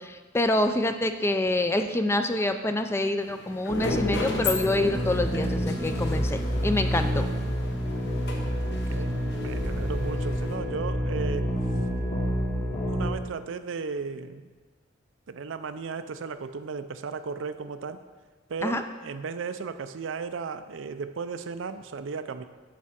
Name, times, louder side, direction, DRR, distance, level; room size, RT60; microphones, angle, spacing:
voice 1, 0.0-7.3 18.6-18.8, left 1 dB, 15° left, 8 dB, 0.4 m, -26 dB
sound 1, 3.2-10.5, left 3 dB, 60° left, 1.1 m, -36 dB
sound 2, 3.7-13.1, equal, 40° left, 1.5 m, -28 dB
voice 2, 8.7-11.5 12.4-14.5 15.3-18.0 18.5-22.4, right 5 dB, 70° right, 11 dB, 0.4 m, -35 dB
9.2 x 6.1 x 4.3 m, 1.4 s
head